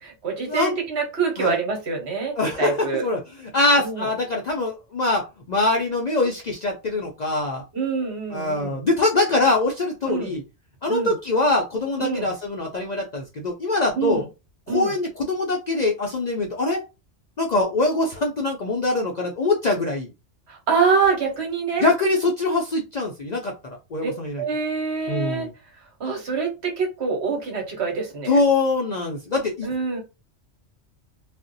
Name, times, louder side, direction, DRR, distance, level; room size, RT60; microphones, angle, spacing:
voice 1, 0.0-3.0 3.8-4.1 7.7-8.8 10.1-10.3 10.9-11.1 12.0-12.3 13.9-14.2 14.7-14.9 20.5-21.9 24.0-24.1 24.4-25.5 26.0-28.3 29.6-30.0, right 5 dB, 65° right, 2 dB, 1.2 m, -25 dB
voice 2, 2.4-7.6 8.3-10.4 10.8-14.2 14.7-16.8 17.4-20.1 21.8-23.5 23.9-24.4 25.1-25.5 28.3-29.7, left 2 dB, 55° left, 0 dB, 0.5 m, -23 dB
2.5 x 2.1 x 3.8 m, 0.28 s
omnidirectional pair, 1.2 m